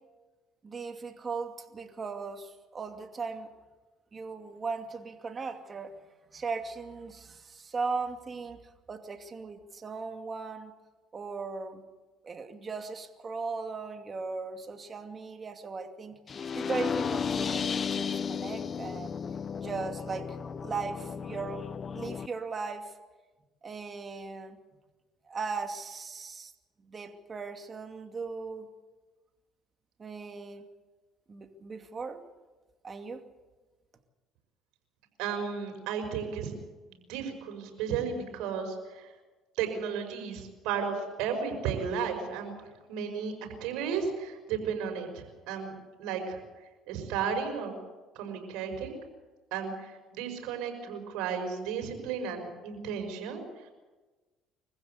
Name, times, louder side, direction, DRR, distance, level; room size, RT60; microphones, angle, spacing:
voice 1, 0.6-3.5 4.1-6.0 6.3-8.6 8.9-10.7 11.1-11.9 12.2-19.2 19.5-21.7 21.9-22.9 23.6-24.6 25.3-26.5 26.8-28.7 30.0-30.7 31.3-32.2 32.8-33.2, right 4 dB, 35° right, 6 dB, 2.6 m, -38 dB
sound 1, 16.3-22.3, left 6 dB, 40° left, 0.8 m, -34 dB
voice 2, 35.2-36.5 36.9-39.1 39.6-42.6 42.9-43.3 43.6-46.4 46.9-47.7 48.1-49.0 49.5-53.4, right 6 dB, 80° right, 4 dB, 5.6 m, -34 dB
24.5 x 15.5 x 8.1 m, 1.2 s
supercardioid pair, 85°, 0 cm